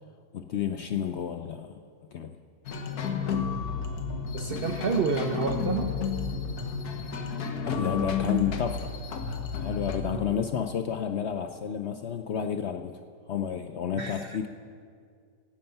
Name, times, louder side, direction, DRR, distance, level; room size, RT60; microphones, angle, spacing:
voice 1, 0.3-1.8 2.1-2.4 7.6-8.9 9.5-13.0 13.3-14.5, left 8 dB, 65° left, 7 dB, 0.7 m, -31 dB
sound 1, 2.7-10.0, left 5 dB, 85° left, 1.6 m, -31 dB
voice 2, 4.3-5.9 10.1-10.4 14.0-14.5, right 5 dB, 55° right, 6 dB, 0.7 m, -30 dB
16.5 x 11.0 x 5.6 m, 2.2 s
omnidirectional pair, 1.6 m